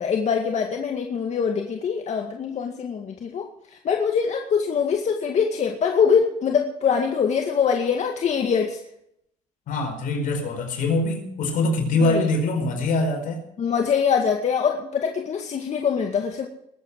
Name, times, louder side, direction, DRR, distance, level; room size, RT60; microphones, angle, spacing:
voice 1, 0.0-3.5 3.8-8.8 12.0-12.3 13.6-16.5, left 6 dB, 55° left, 3 dB, 2.1 m, -23 dB
voice 2, 9.7-13.4, left 2 dB, 80° left, 4 dB, 5.0 m, -23 dB
21.5 x 8.7 x 6.3 m, 0.75 s
cardioid pair, 90°, 14 cm